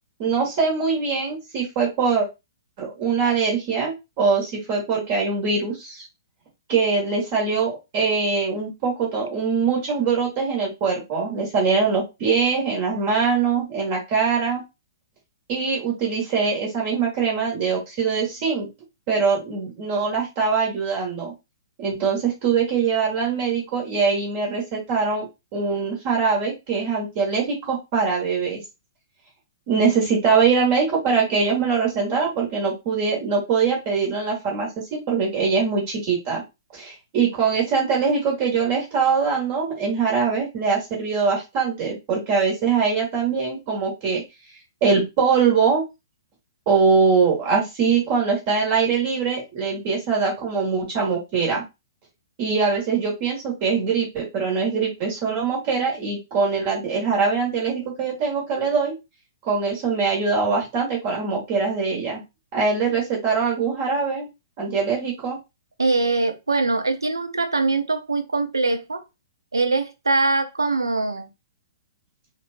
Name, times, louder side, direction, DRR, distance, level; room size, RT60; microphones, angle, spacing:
voice 1, 0.2-2.3 2.8-6.1 6.7-14.6 15.5-18.7 19.1-21.3 21.8-25.3 25.5-28.6 29.7-36.4 36.7-44.2 44.8-45.8 46.7-51.6 52.4-58.9 59.4-62.2 62.5-64.3 64.6-65.4, right 5 dB, 40° right, 1.8 m, -22 dB
voice 2, 65.8-69.0 69.5-71.3, right 3 dB, 80° right, 0.6 m, -22 dB
4.2 x 2.6 x 2.6 m
figure-of-eight pair, 115°, 2 cm